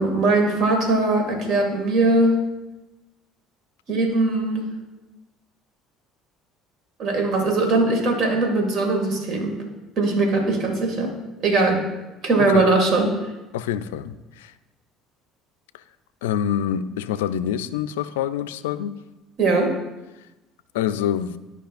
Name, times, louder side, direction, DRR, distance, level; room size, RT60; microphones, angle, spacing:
voice 1, 0.0-2.4 3.9-4.7 7.0-9.6 10.0-11.1 11.4-11.8 12.2-13.1 19.4-19.7, right 2 dB, 60° right, 3 dB, 1.8 m, -20 dB
voice 2, 13.5-14.5 16.2-19.0 20.7-21.4, left 9 dB, 85° left, 14 dB, 0.3 m, -26 dB
13.0 x 5.4 x 2.5 m, 1.0 s
hypercardioid pair, 65°, 0 cm